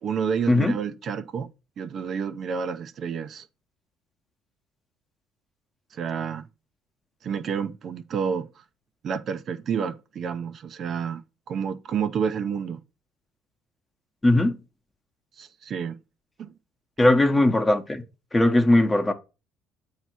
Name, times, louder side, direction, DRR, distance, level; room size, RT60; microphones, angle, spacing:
voice 1, 0.0-1.5 1.8-3.5 5.9-6.5 7.2-8.6 9.0-12.8 15.4-16.0 16.4-16.5, right 7 dB, 55° right, 0.7 m, -29 dB
voice 2, 14.2-14.6 17.0-18.0 18.3-19.1, left 1 dB, 15° left, 1.0 m, -19 dB
8.0 x 2.8 x 6.1 m
supercardioid pair, 80°, 0 cm